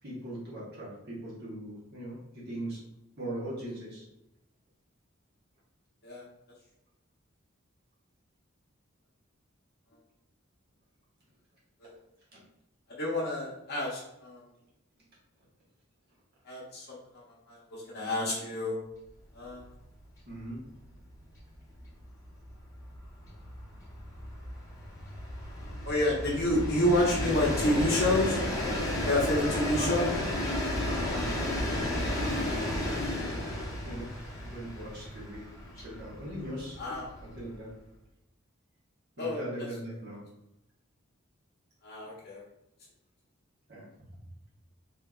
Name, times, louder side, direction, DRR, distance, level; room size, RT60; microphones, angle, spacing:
voice 1, 0.0-2.8 3.2-4.0 12.3-12.4 20.3-20.6 29.7-30.1 30.8-31.6 32.1-33.2 33.8-34.1 34.4-35.5 35.8-36.8 37.2-37.7 39.2-40.3 43.7-43.9, right 1 dB, 50° right, -6 dB, 1.0 m, -40 dB
voice 2, 13.0-14.4 16.4-18.8 19.3-19.7 25.8-28.4 29.0-30.0 36.8-37.1 39.2-39.4 41.8-42.4, left 1 dB, 50° left, -5 dB, 0.7 m, -29 dB
Train, 19.4-19.5 19.9-20.0 20.3-37.7, left 1 dB, 15° left, 0.8 m, -33 dB
3.5 x 2.7 x 2.3 m, 0.87 s
head